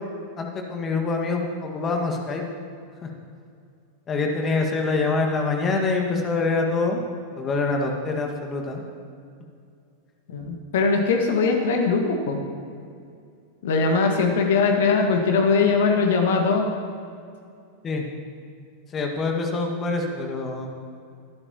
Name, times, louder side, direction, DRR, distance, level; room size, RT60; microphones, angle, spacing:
voice 1, 0.4-2.4 3.0-3.1 4.1-7.0 7.4-8.8 17.8-18.1 18.9-20.7, left 3 dB, 25° left, 2 dB, 1.8 m, -25 dB
voice 2, 10.3-12.4 13.6-16.7, left 4 dB, 55° left, 3 dB, 1.7 m, -21 dB
21.0 x 12.0 x 3.0 m, 2.4 s
figure-of-eight pair, 90°, 0 cm